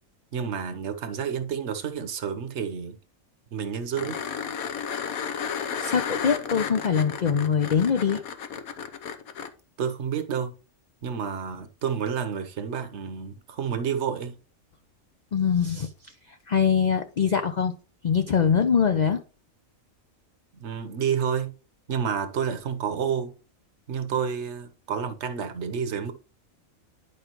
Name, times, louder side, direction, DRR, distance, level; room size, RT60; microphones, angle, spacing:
voice 1, 0.3-3.0 3.5-4.2 9.8-10.5 11.0-14.3 20.5-21.5 21.9-23.3 23.9-26.1, right 7 dB, 55° right, 1.1 m, -29 dB
sound 1, 4.0-9.5 12.2-12.3, left 7 dB, 80° left, 1.3 m, -33 dB
voice 2, 5.8-8.2 15.3-15.9 16.5-17.8 18.0-19.2, left 7 dB, 60° left, 0.4 m, -23 dB
11.0 x 4.9 x 3.0 m
omnidirectional pair, 1.5 m